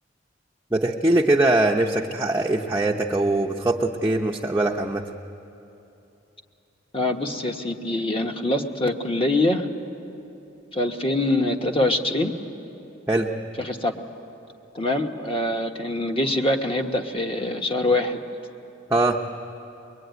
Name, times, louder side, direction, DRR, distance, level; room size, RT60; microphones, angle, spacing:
voice 1, 0.7-5.0 13.1-13.3 18.9-19.2, right 2 dB, 15° right, -1 dB, 0.7 m, -22 dB
voice 2, 6.9-9.7 10.7-12.3 13.6-13.9 14.7-18.2, left 1 dB, 30° left, 4 dB, 1.2 m, -24 dB
23.0 x 22.5 x 9.4 m, 2.9 s
head